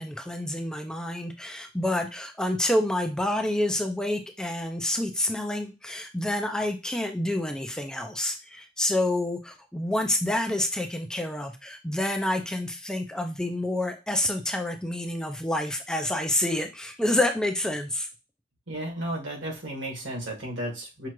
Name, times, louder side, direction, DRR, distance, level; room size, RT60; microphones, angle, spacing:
voice 1, 0.0-18.1, left 1 dB, 5° left, 4 dB, 0.4 m, -28 dB
voice 2, 18.7-21.1, right 1 dB, 85° right, -1 dB, 1.7 m, -33 dB
5.8 x 2.5 x 3.0 m, 0.27 s
head